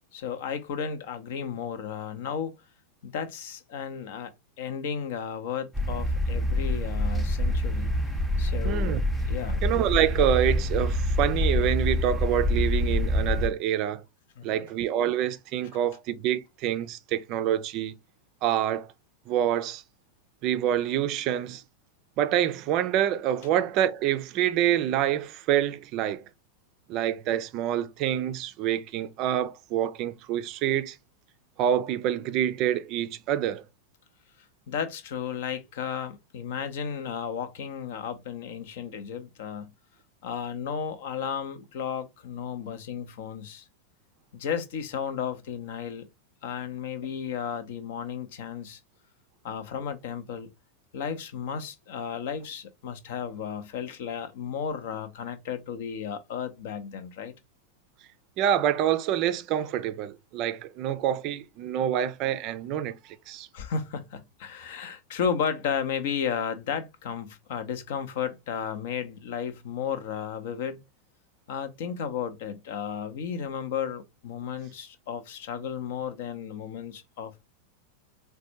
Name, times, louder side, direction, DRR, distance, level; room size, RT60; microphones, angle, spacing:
voice 1, 0.1-2.6 3.0-4.3 4.6-7.9 8.4-9.0 9.2-9.6 14.4-14.7 34.7-39.7 40.2-43.6 44.3-46.0 46.4-48.8 49.4-50.5 50.9-57.3 63.5-70.8 71.5-77.3, left 7 dB, 55° left, 0.6 m, -33 dB
sound 1, 5.7-13.5, left 1 dB, 5° left, 0.6 m, -26 dB
voice 2, 8.6-9.0 9.6-14.0 14.4-18.0 18.4-18.9 19.3-19.8 20.4-21.6 22.2-26.2 26.9-31.0 31.6-33.6 58.4-63.5, right 11 dB, 40° right, 0.4 m, -26 dB
4.1 x 2.2 x 2.7 m
figure-of-eight pair, 90°, 0 cm